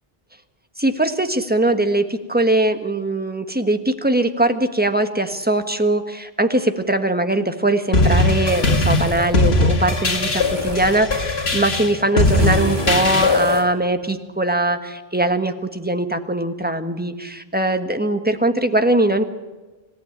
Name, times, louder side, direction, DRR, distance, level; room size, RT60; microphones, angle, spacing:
voice 1, 0.8-19.2, right 1 dB, 10° right, 7 dB, 1.4 m, -21 dB
sound 1, 7.9-13.6, left 2 dB, 80° left, 2.1 m, -19 dB
sound 2, 8.5-9.4 10.4-11.1 12.2-13.7, right 1 dB, 50° right, 3.2 m, -31 dB
26.5 x 15.0 x 9.5 m, 1.2 s
omnidirectional pair, 1.0 m